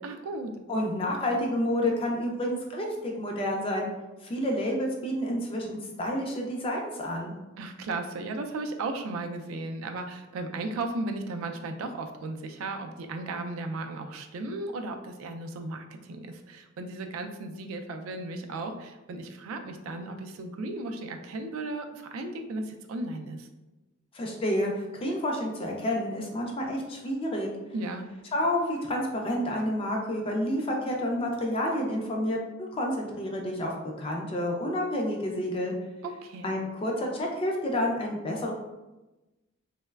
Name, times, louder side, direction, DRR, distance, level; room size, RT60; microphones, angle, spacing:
voice 1, 0.0-0.6 7.6-23.5 27.7-28.1 36.0-36.5, right 2 dB, 85° right, 6 dB, 0.3 m, -35 dB
voice 2, 0.7-3.9 4.2-7.3 24.1-27.5 28.3-33.7 34.0-35.7 36.4-38.5, left 1 dB, 25° left, 0 dB, 0.3 m, -29 dB
3.0 x 2.0 x 2.2 m, 1.1 s
head